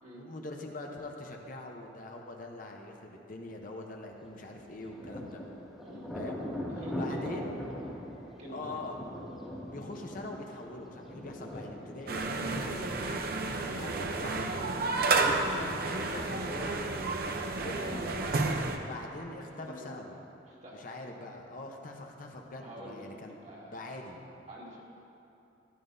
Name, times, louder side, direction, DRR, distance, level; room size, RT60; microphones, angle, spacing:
voice 1, 0.1-5.4 6.1-6.4 6.9-7.6 8.5-9.1 9.7-13.2 13.7-14.6 15.4-17.1 17.6-18.2 18.9-20.2 20.7-23.4 23.7-24.2, left 2 dB, 50° left, 2 dB, 0.9 m, -43 dB
Thunder, 4.5-14.0, left 1 dB, ahead, 1.8 m, -41 dB
voice 2, 6.7-7.6 8.4-8.9 14.9-15.2 17.5-18.0 18.3-19.0 19.4-20.0 20.5-20.9 22.6-23.1 23.4-23.9 24.5-24.8, equal, 40° right, -4 dB, 2.0 m, -46 dB
sound 1, 12.1-18.8, right 3 dB, 55° right, 0.7 m, -31 dB
14.5 x 11.0 x 2.7 m, 2.8 s
head